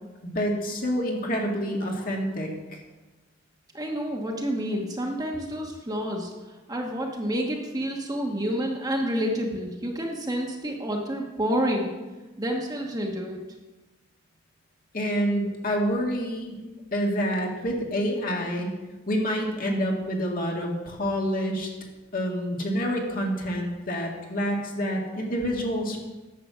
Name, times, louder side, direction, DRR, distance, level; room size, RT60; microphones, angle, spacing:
voice 1, 0.2-2.8 14.9-16.6 16.9-18.7 19.1-21.7 22.1-26.0, equal, 40° left, 0 dB, 1.9 m, -27 dB
voice 2, 3.7-6.3 6.7-11.9 12.4-13.4, equal, 20° right, 0 dB, 1.2 m, -29 dB
10.5 x 7.6 x 6.2 m, 1.2 s
head